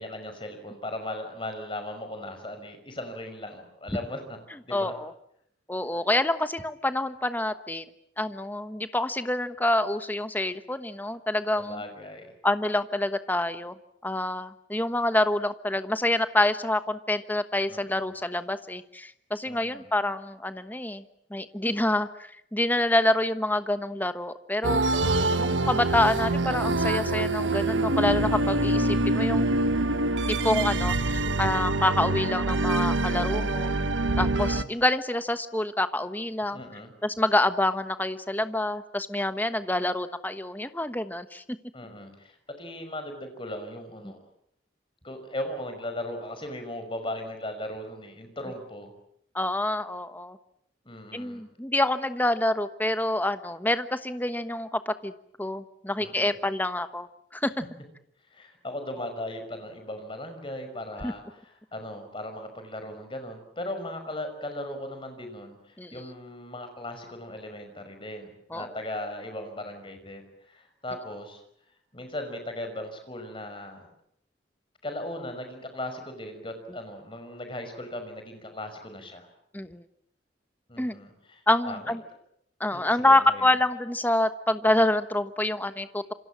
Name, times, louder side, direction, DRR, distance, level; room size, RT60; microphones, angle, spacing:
voice 1, 0.0-4.4 4.6-4.9 11.6-12.3 17.7-18.1 19.5-19.8 25.0-25.4 36.5-36.9 41.7-44.2 45.0-48.9 50.8-51.4 56.0-56.4 58.3-71.4 71.9-73.9 74.8-79.3 80.7-81.9 82.7-83.5, left 1 dB, 30° left, 7 dB, 5.7 m, -38 dB
voice 2, 4.7-5.1 5.7-7.8 8.2-11.8 12.4-13.7 14.0-21.0 21.3-24.8 25.4-29.5 30.4-33.8 34.2-36.6 37.0-41.4 49.3-50.4 51.1-55.1 55.4-57.1 57.3-57.5 61.0-61.1 65.8-65.9 68.5-68.7 79.5-79.8 80.8-81.0 81.5-82.0 82.6-86.0, left 1 dB, 10° left, 11 dB, 1.2 m, -27 dB
sound 1, 24.6-34.6, right 2 dB, 85° right, 1.4 m, -25 dB
28.0 x 25.5 x 7.6 m, 0.72 s
head